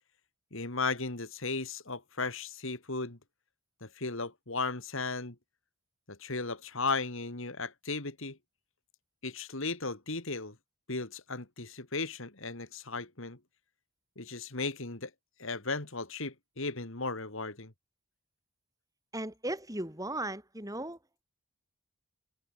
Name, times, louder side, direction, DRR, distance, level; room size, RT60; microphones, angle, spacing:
voice 1, 0.5-3.2 3.8-5.4 6.1-8.4 9.2-10.5 10.9-13.4 14.2-15.1 15.4-17.7, left 3 dB, 60° left, 2.5 m, -36 dB
voice 2, 19.1-21.0, right 1 dB, 15° right, 7.8 m, -36 dB
head